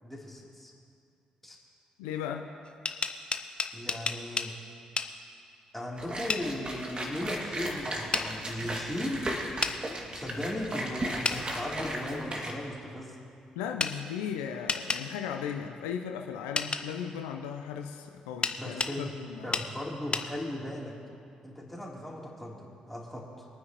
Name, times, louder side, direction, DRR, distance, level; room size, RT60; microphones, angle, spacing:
voice 1, 0.0-0.7 1.4-1.6 3.7-4.5 5.7-9.2 10.1-13.2 18.6-19.1 19.4-20.9 21.4-23.5, left 1 dB, 5° left, -4 dB, 3.4 m, -37 dB
voice 2, 2.0-2.4 13.6-19.6, left 8 dB, 75° left, 4 dB, 0.6 m, -36 dB
sound 1, 2.7-4.5 5.0-5.1 6.3-6.5 8.1-8.3 9.6-9.8 11.2-11.4 13.8-13.9 14.7-15.0 16.6-16.8 18.4-19.0 19.5-19.7 20.1-20.3, left 4 dB, 30° left, 0.9 m, -30 dB
sound 2, 6.0-12.5, right 1 dB, 30° right, 2.4 m, -36 dB
24.5 x 9.6 x 3.0 m, 2.4 s
figure-of-eight pair, 40°, 3 cm